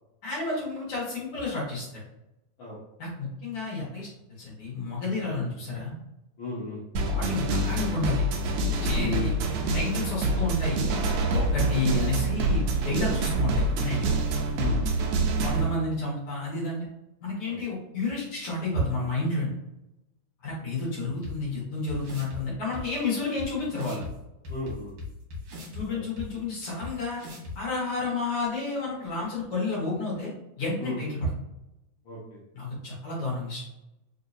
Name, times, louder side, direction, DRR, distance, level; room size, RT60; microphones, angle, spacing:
voice 1, 0.2-2.0 3.0-4.1 4.4-5.9 7.0-8.2 8.8-9.3 9.7-10.9 11.3-14.1 15.4-16.8 17.2-19.5 20.4-24.0 25.7-27.2 27.6-30.3 30.6-31.3 32.5-33.7, left 3 dB, 55° left, -6 dB, 2.0 m, -30 dB
voice 2, 6.4-6.8 11.6-11.8 14.5-15.0 17.5-17.6 24.5-24.9 25.9-26.0 30.8-31.0 32.1-32.4, left 2 dB, 85° left, -8 dB, 1.0 m, -36 dB
sound 1, 7.0-15.7, right 2 dB, 90° right, 1.5 m, -26 dB
sound 2, 21.2-21.3 21.9-22.4 22.7-22.8 23.4-23.5 23.7-24.1 24.4-25.8 26.2-26.3 26.8-26.9 27.2-27.5, left 3 dB, 65° right, 2.2 m, -38 dB
4.9 x 2.8 x 2.6 m, 0.89 s
omnidirectional pair, 3.6 m